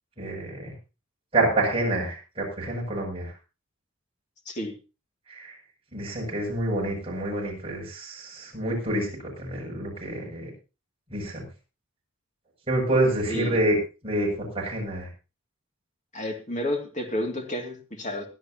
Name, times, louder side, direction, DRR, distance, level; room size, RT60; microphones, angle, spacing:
voice 1, 0.2-0.7 1.3-3.3 5.3-5.5 5.9-9.1 9.4-10.5 11.1-11.4 12.7-13.8 14.0-15.1, right 1 dB, 25° right, -2 dB, 7.2 m, -27 dB
voice 2, 13.3-13.6 16.1-18.3, left 1 dB, 35° left, 2 dB, 2.5 m, -31 dB
21.0 x 11.5 x 3.0 m, 0.31 s
head